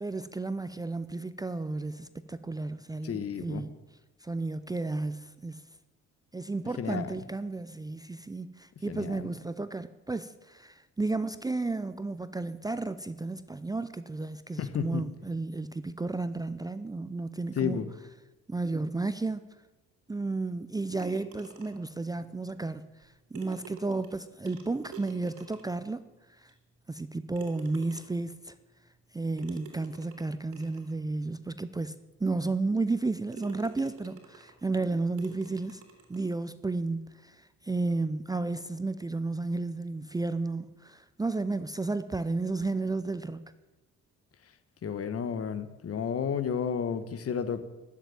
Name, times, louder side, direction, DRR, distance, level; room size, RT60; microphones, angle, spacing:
voice 1, 0.0-3.7 4.2-5.6 6.3-17.8 18.5-19.5 20.1-26.0 26.4-26.5 26.9-28.5 29.1-31.9 32.2-35.8 36.1-43.4, right 3 dB, 15° right, 0.5 m, -33 dB
voice 2, 3.0-3.6 6.8-7.2 8.9-9.3 14.6-15.0 17.6-17.9 44.8-47.6, left 7 dB, 50° left, 1.2 m, -32 dB
sound 1, 21.0-22.0 23.0-23.1 23.3-25.9 26.5-26.6 27.3-28.3 29.4-30.9 31.6-31.7 32.2-32.3 32.8-33.0 33.3-34.6 35.2-36.3, right 6 dB, 85° right, 2.8 m, -49 dB
12.5 x 7.5 x 9.0 m
cardioid pair, 90°, 30 cm